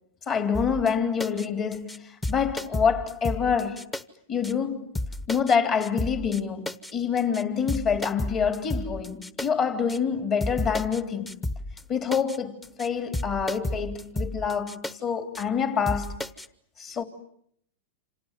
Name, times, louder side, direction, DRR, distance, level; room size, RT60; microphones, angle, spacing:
voice 1, 0.3-3.8 4.3-4.9 5.3-11.3 11.9-16.2 16.8-17.0, left 6 dB, 35° left, 3.4 m, -26 dB
sound 1, 0.5-0.9 1.2-1.5 1.7-2.0 2.2-4.0 4.4-4.5 4.9-5.5 5.8-6.4 6.7-6.9 7.2-7.4 7.7-9.5 9.9-10.0 10.4-11.0 11.3-11.8 12.1-12.4 12.6-12.9 13.1-14.9 15.3-15.4 15.9-16.5, left 1 dB, 15° left, 1.2 m, -32 dB
29.0 x 27.0 x 7.6 m
hypercardioid pair, 125°, 0 cm